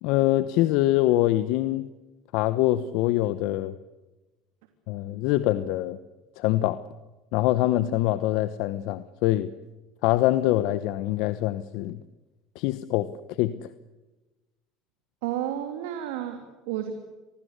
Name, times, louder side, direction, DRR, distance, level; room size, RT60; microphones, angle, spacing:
voice 1, 0.0-1.8 2.3-3.7 4.9-6.0 6.4-6.8 7.3-9.5 10.0-12.0 12.6-13.1 13.4-13.5, left 15 dB, 70° left, 14 dB, 1.0 m, -24 dB
voice 2, 15.2-16.9, right 11 dB, 80° right, 6 dB, 2.9 m, -31 dB
27.0 x 19.0 x 8.2 m, 1.1 s
supercardioid pair, 85°, 0 cm